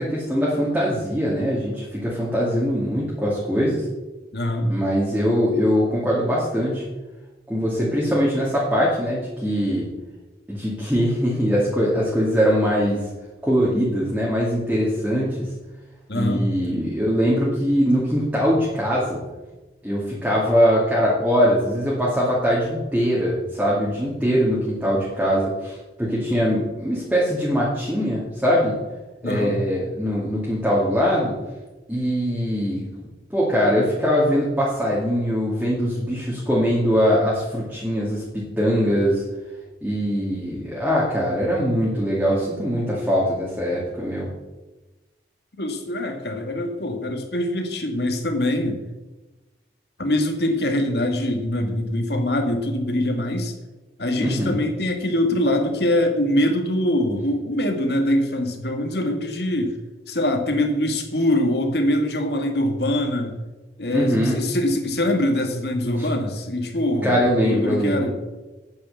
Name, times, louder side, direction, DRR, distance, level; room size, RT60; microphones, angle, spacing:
voice 1, 0.0-3.8 4.7-6.8 7.5-9.9 10.5-13.0 13.4-15.5 16.1-19.2 19.8-28.8 29.2-31.3 31.9-32.9 33.3-39.2 39.8-44.3 54.2-54.6 63.9-64.4 66.0-66.1 67.0-68.1, equal, 5° right, -7 dB, 2.4 m, -22 dB
voice 2, 4.3-4.7 16.1-16.4 29.2-29.6 45.6-48.8 50.0-53.5 54.0-59.8 60.1-63.3 63.8-68.1, left 1 dB, 65° left, 4 dB, 2.0 m, -23 dB
9.2 x 8.7 x 7.1 m, 1.1 s
head